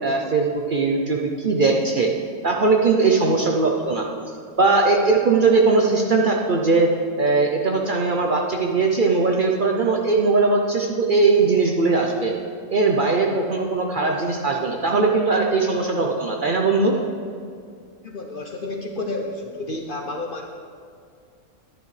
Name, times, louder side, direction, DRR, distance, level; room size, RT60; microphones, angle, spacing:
voice 1, 0.0-2.1 2.4-4.1 4.6-6.9 7.2-12.3 12.7-17.0, right 3 dB, 50° right, 1 dB, 0.7 m, -20 dB
voice 2, 18.0-20.5, left 2 dB, 55° left, 2 dB, 0.6 m, -30 dB
11.0 x 9.9 x 3.3 m, 2.3 s
omnidirectional pair, 1.4 m